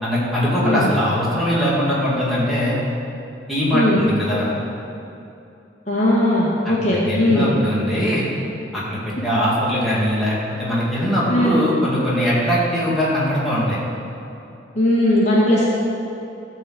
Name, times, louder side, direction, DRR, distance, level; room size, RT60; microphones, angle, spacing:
voice 1, 0.0-2.8 3.5-4.5 6.7-6.8 7.1-8.3 8.7-13.8, equal, ahead, -9 dB, 2.4 m, -21 dB
voice 2, 3.7-4.0 5.9-7.5 11.3-11.6 14.7-15.7, left 1 dB, 35° left, -6 dB, 1.9 m, -18 dB
13.5 x 4.6 x 7.8 m, 2.8 s
head